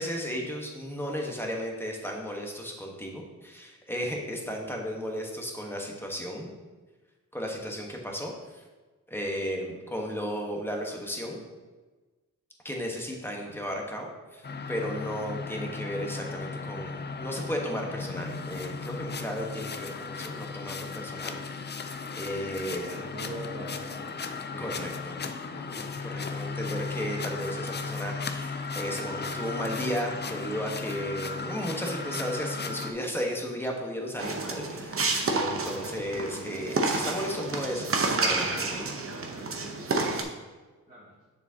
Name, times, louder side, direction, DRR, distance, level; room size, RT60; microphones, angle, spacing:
voice 1, 0.0-6.5 7.3-8.6 9.1-11.4 12.6-22.9 24.6-25.2 25.5-38.9, equal, 5° left, 0 dB, 1.2 m, -34 dB
sound 1, 14.4-32.9, left 4 dB, 35° left, 0.5 m, -36 dB
voice 2, 22.9-24.2 24.5-24.9 40.9-41.1, right 1 dB, 25° right, -10 dB, 1.8 m, -42 dB
sound 2, 34.2-40.2, right 3 dB, 45° right, 0.9 m, -29 dB
7.1 x 6.8 x 2.8 m, 1.3 s
wide cardioid pair, 95°, 31 cm